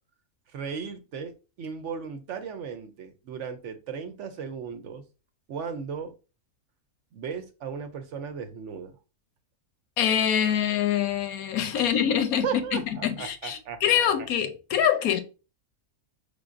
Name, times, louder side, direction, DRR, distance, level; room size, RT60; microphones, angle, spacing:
voice 1, 0.5-5.0 5.5-6.1 7.1-8.9 11.8-12.0 12.4-13.8, right 6 dB, 65° right, 0.9 m, -36 dB
voice 2, 10.0-15.2, left 9 dB, 85° left, 1.1 m, -25 dB
5.3 x 3.4 x 2.5 m
omnidirectional pair, 1.5 m